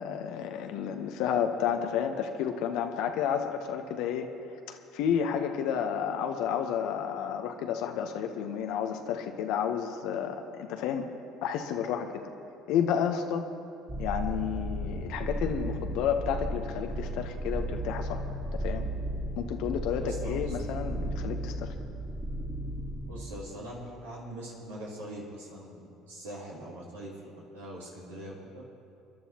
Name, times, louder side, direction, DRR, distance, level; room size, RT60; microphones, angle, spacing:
voice 1, 0.0-4.3 4.7-11.1 11.4-12.3 12.7-13.4 14.0-18.2 18.5-18.9 19.4-21.7, left 8 dB, 70° left, 5 dB, 1.0 m, -31 dB
sound 1, 13.9-23.1, right 1 dB, 15° right, 2.1 m, -34 dB
voice 2, 20.0-20.6 23.1-28.6, right 1 dB, 90° right, -6 dB, 2.8 m, -43 dB
27.5 x 11.5 x 3.0 m, 2.6 s
hypercardioid pair, 65°, 0 cm